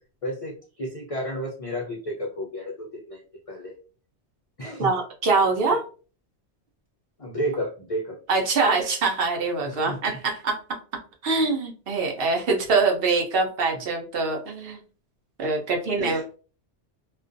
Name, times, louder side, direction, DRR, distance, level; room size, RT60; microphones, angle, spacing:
voice 1, 0.2-3.2 3.5-3.8 4.6-4.9 7.2-8.2 9.7-10.0 11.4-11.5 16.0-16.2, equal, 55° left, -1 dB, 0.3 m, -32 dB
voice 2, 4.8-5.8 8.3-10.6 11.2-14.8 15.4-16.4, right 4 dB, 60° right, 1 dB, 0.8 m, -24 dB
2.4 x 2.2 x 2.5 m, 0.37 s
omnidirectional pair, 1.2 m